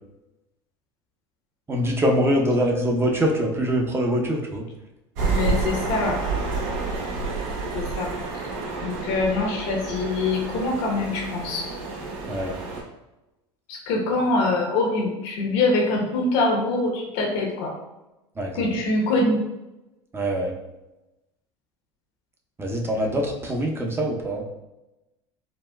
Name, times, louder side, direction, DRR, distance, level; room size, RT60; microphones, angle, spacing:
voice 1, 1.7-4.6 12.3-12.5 18.4-18.5 20.1-20.5 22.6-24.4, equal, 15° right, 1 dB, 0.6 m, -23 dB
sound 1, 5.2-12.8, right 3 dB, 70° right, 0.9 m, -29 dB
voice 2, 5.3-6.2 7.7-8.1 8.8-11.7 13.7-17.7 18.5-19.4, left 2 dB, 65° left, 0 dB, 0.9 m, -24 dB
4.1 x 2.2 x 2.2 m, 0.98 s
hypercardioid pair, 90°, 14 cm